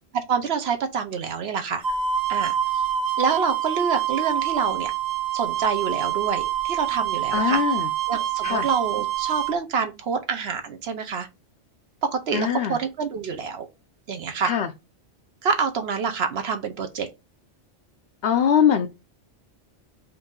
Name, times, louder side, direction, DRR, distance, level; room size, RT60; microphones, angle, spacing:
voice 1, 0.1-1.8 2.3-2.9 3.2-4.9 5.3-7.8 8.1-11.3 12.0-13.7 14.1-14.5 15.4-17.1, right 6 dB, 60° right, 0.9 m, -27 dB
sound 1, 1.8-9.5, right 10 dB, 40° right, 0.8 m, -26 dB
voice 2, 7.3-7.9 8.4-8.7 12.3-12.8 14.4-14.7 18.2-18.9, left 8 dB, 65° left, 0.8 m, -21 dB
4.6 x 2.6 x 3.7 m
omnidirectional pair, 1.2 m